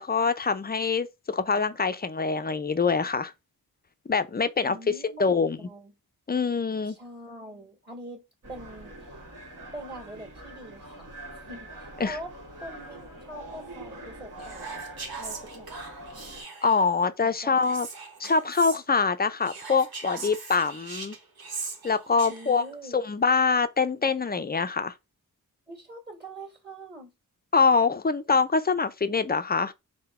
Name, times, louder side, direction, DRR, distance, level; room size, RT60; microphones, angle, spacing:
voice 1, 0.0-3.3 4.1-4.8 5.2-5.6 6.3-7.0 12.0-12.2 16.6-17.9 18.2-21.2 21.8-22.6 22.9-24.9 27.5-29.7, left 4 dB, 25° left, 0.4 m, -24 dB
voice 2, 4.6-5.9 6.9-8.2 8.5-9.1 9.7-11.1 11.3-12.3 12.6-14.8 15.2-15.7 17.2-17.8 18.2-18.3 22.3-23.0 25.7-27.1, right 1 dB, 25° right, 1.9 m, -43 dB
sound 1, 8.4-16.4, right 1 dB, 55° right, 1.3 m, -44 dB
Whispering, 14.4-16.9 17.6-18.8 19.4-22.7, right 4 dB, 75° right, 1.2 m, -40 dB
3.9 x 2.2 x 4.2 m
cardioid pair, 70°, 37 cm